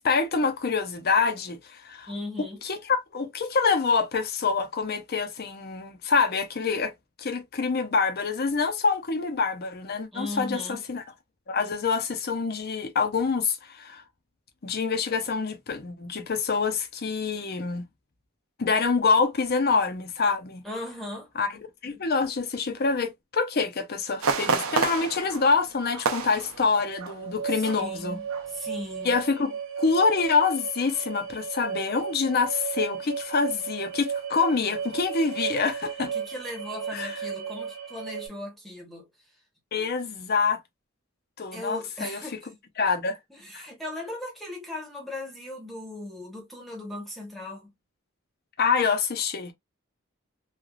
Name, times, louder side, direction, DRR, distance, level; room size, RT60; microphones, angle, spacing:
voice 1, 0.0-2.1 2.6-6.9 7.2-11.0 11.5-14.0 14.6-17.8 18.6-20.6 21.4-21.5 21.8-28.2 29.0-36.1 36.9-37.2 39.7-40.6 41.4-42.2 42.8-43.2 43.5-43.7 48.6-49.5, left 4 dB, 50° left, 0.6 m, -26 dB
voice 2, 2.1-2.6 10.1-10.8 20.6-21.3 27.5-29.2 36.0-39.1 41.5-42.5 43.3-47.7, left 1 dB, ahead, 1.0 m, -38 dB
sound 1, 24.2-27.3 27.6-27.8 28.3-28.7 29.1-29.2, right 4 dB, 85° right, 0.6 m, -29 dB
sound 2, 26.7-38.3, right 7 dB, 55° right, 1.2 m, -35 dB
3.3 x 2.3 x 2.3 m
head